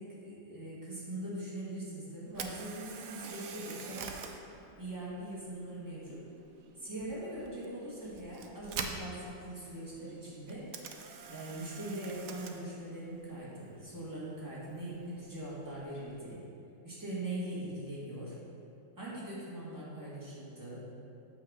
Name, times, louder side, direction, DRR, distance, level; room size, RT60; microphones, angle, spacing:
voice 1, 0.0-4.2 4.7-6.2 6.8-10.7 11.3-16.4 16.8-18.4 19.0-20.9, right 1 dB, 10° right, -8 dB, 1.8 m, -41 dB
Camera, 2.3-16.3, right 6 dB, 70° right, 0.8 m, -47 dB
8.6 x 3.6 x 6.3 m, 2.7 s
omnidirectional pair, 2.0 m